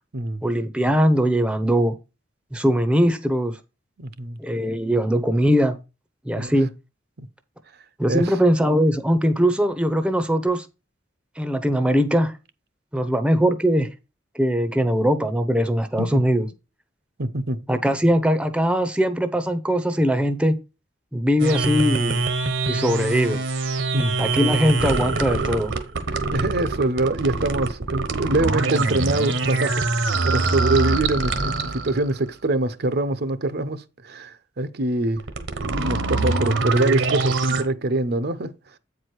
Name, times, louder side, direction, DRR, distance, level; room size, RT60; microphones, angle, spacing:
voice 1, 0.4-1.9 2.5-3.6 4.4-5.8 6.2-6.7 8.0-10.7 11.4-12.3 12.9-13.9 14.3-16.5 17.7-20.6 21.1-22.2 22.7-23.4 24.2-25.7, equal, 5° right, 0.7 m, -21 dB
voice 2, 4.0-4.4 6.3-6.5 8.1-8.3 16.0-16.2 17.2-17.6 23.9-24.2 26.3-35.2 35.8-38.5, right 2 dB, 55° right, 0.7 m, -24 dB
sound 1, 21.4-32.2 35.2-37.6, right 3 dB, 75° right, 1.2 m, -24 dB
8.5 x 4.8 x 4.6 m
head